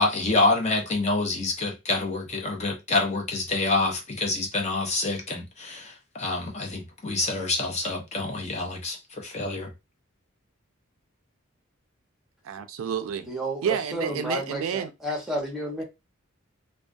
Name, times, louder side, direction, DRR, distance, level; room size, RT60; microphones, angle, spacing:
voice 1, 0.0-9.7, left 2 dB, 35° left, 0.6 m, -27 dB
voice 2, 12.4-13.3 13.6-14.9, right 7 dB, 75° right, 0.4 m, -29 dB
voice 3, 13.3-15.8, right 1 dB, ahead, 0.7 m, -31 dB
2.2 x 2.2 x 2.5 m
head